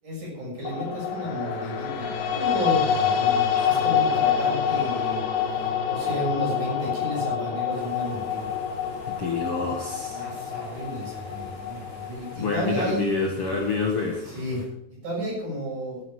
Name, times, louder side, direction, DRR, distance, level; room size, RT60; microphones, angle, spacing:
voice 1, 0.0-5.2 5.5-8.5 10.1-13.1 14.3-14.6 15.0-16.0, equal, 60° right, -3 dB, 7.9 m, -32 dB
sound 1, 0.6-12.9, left 7 dB, 70° left, 2.9 m, -27 dB
sound 2, 7.7-14.7, left 1 dB, 15° left, 7.2 m, -48 dB
voice 2, 9.1-10.2 12.4-14.2, left 4 dB, 50° left, 0 dB, 2.2 m, -27 dB
16.5 x 9.8 x 4.9 m, 0.82 s
omnidirectional pair, 4.0 m